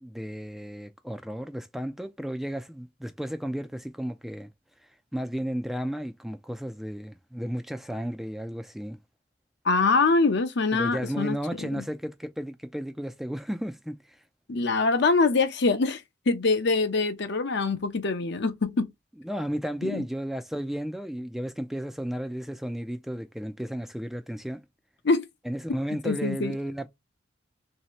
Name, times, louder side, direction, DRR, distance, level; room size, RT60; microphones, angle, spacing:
voice 1, 0.0-4.5 4.8-9.0 10.7-14.2 19.2-24.6 25.4-26.9, equal, ahead, 0.3 m, -33 dB
voice 2, 9.6-11.4 11.6-11.8 14.5-16.0 16.3-18.9 19.8-20.0 25.0-25.3 26.0-26.5, left 3 dB, 65° left, 0.7 m, -24 dB
3.2 x 2.8 x 2.9 m
head